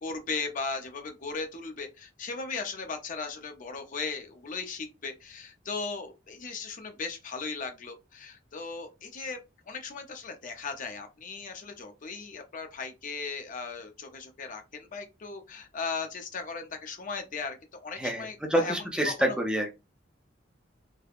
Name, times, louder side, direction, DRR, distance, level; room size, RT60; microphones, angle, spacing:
voice 1, 0.0-9.4 9.7-18.7 19.1-19.2, left 4 dB, 45° left, 0.5 m, -37 dB
voice 2, 18.0-19.8, right 1 dB, 5° right, 0.5 m, -28 dB
3.3 x 2.0 x 2.3 m
head